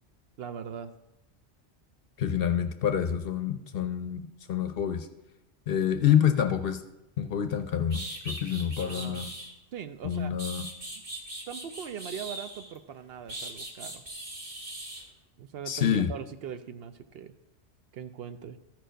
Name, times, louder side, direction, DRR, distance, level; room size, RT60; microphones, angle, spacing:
voice 1, 0.4-0.9 8.8-9.2 9.7-10.3 11.5-14.0 15.4-17.3 17.9-18.6, right 8 dB, 65° right, 10 dB, 0.7 m, -40 dB
voice 2, 2.2-5.1 5.7-6.8 7.2-9.3 10.0-10.7 15.7-16.1, left 9 dB, 60° left, 8 dB, 0.7 m, -27 dB
sound 1, 7.5-7.6 7.9-9.5 10.1-12.8 13.3-15.0, right 1 dB, 40° right, 1.8 m, -40 dB
13.5 x 4.7 x 5.1 m, 0.97 s
omnidirectional pair, 1.2 m